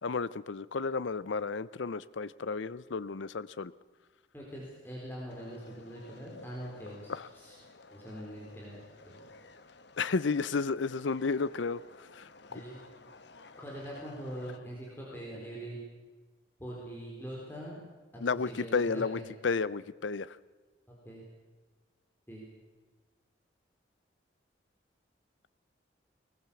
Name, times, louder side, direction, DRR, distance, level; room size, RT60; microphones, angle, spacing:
voice 1, 0.0-3.7 7.1-7.3 10.0-11.8 12.1-12.6 18.2-20.4, left 4 dB, 80° left, 18 dB, 0.6 m, -32 dB
voice 2, 4.3-7.6 7.9-8.8 9.1-9.3 12.5-12.8 13.6-15.8 16.6-17.8 18.1-19.2 20.9-21.2 22.3-22.4, right 1 dB, 10° left, -4 dB, 4.0 m, -43 dB
sound 1, 5.3-14.6, left 3 dB, 65° left, 1.1 m, -54 dB
20.0 x 20.0 x 7.1 m, 1.3 s
head